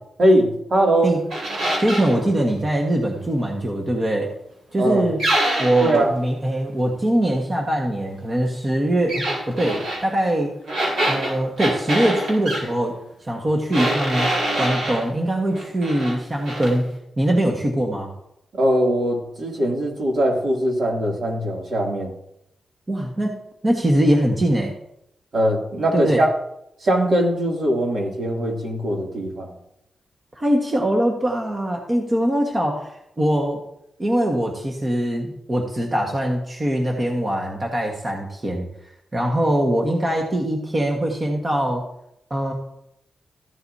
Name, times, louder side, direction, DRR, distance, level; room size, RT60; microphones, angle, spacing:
voice 1, 0.2-1.1 4.8-5.1 5.8-6.1 18.5-22.1 25.3-26.3 26.8-29.5, right 1 dB, 60° right, -1 dB, 2.7 m, -21 dB
sound 1, 1.3-2.2 5.2-6.0 9.1-10.0 10.7-12.6 13.7-15.0 15.5-16.2 16.4-16.7, right 1 dB, 80° right, 4.1 m, -24 dB
voice 2, 1.8-4.3 4.7-5.2 5.6-10.5 11.1-12.9 13.3-14.3 14.6-16.9 17.2-18.1 22.9-24.7 25.9-26.2 30.3-33.6 34.0-38.7 39.1-41.8 42.3-42.5, right 1 dB, 30° right, 0 dB, 1.5 m, -22 dB
14.0 x 7.9 x 2.8 m, 0.80 s
cardioid pair, 95°, 0 cm